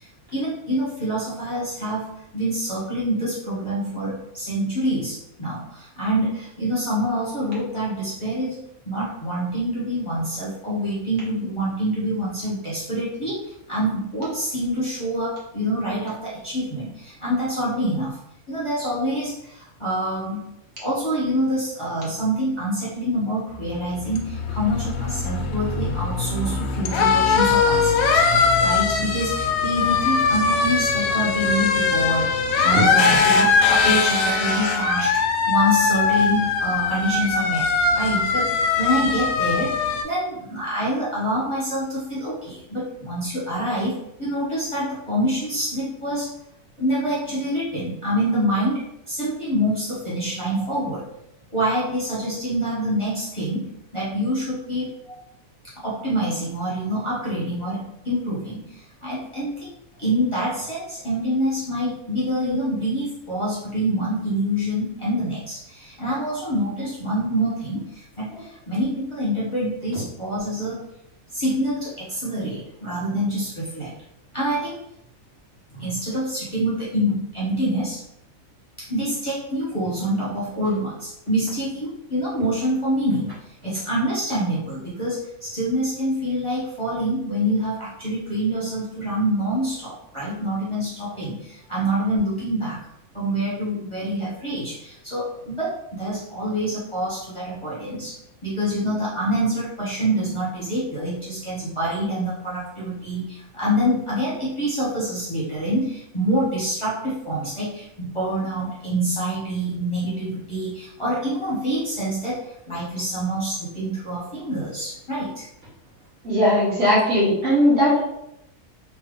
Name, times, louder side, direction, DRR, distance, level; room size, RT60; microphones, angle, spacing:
voice 1, 0.0-2.1 2.3-8.6 8.8-18.2 18.5-20.4 20.8-46.4 46.8-51.1 51.5-53.6 53.9-55.2 55.7-59.7 60.0-70.8 71.3-73.9 74.3-74.8 75.7-78.0 78.8-83.3 83.6-92.8 93.1-115.4, equal, 20° left, -9 dB, 1.1 m, -26 dB
sound 1, 23.6-40.0, left 5 dB, 70° left, 1.0 m, -21 dB
voice 2, 116.2-118.0, left 1 dB, 50° right, -7 dB, 1.6 m, -18 dB
3.3 x 2.8 x 3.8 m, 0.82 s
omnidirectional pair, 1.6 m